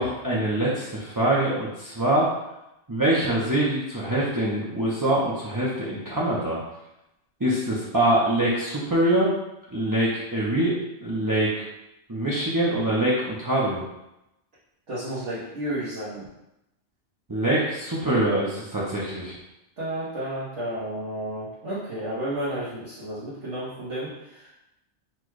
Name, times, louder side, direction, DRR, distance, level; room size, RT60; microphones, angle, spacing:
voice 1, 0.0-2.3 2.9-6.6 7.4-9.3 9.7-10.7 11.0-11.6 12.1-13.8 17.3-19.4, right 1 dB, 20° right, -7 dB, 0.6 m, -24 dB
voice 2, 14.9-16.3 19.8-24.6, right 1 dB, 80° right, -10 dB, 1.5 m, -32 dB
4.4 x 2.3 x 4.6 m, 0.90 s
omnidirectional pair, 1.2 m